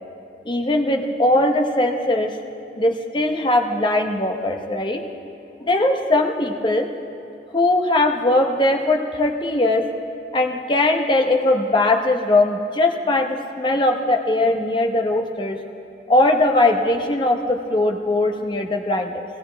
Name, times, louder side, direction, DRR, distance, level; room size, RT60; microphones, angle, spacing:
voice 1, 0.4-2.3 2.8-5.0 5.6-6.9 7.5-9.8 10.3-15.6 16.1-19.2, left 2 dB, 25° left, 2 dB, 0.9 m, -20 dB
16.5 x 16.5 x 3.4 m, 2.8 s
head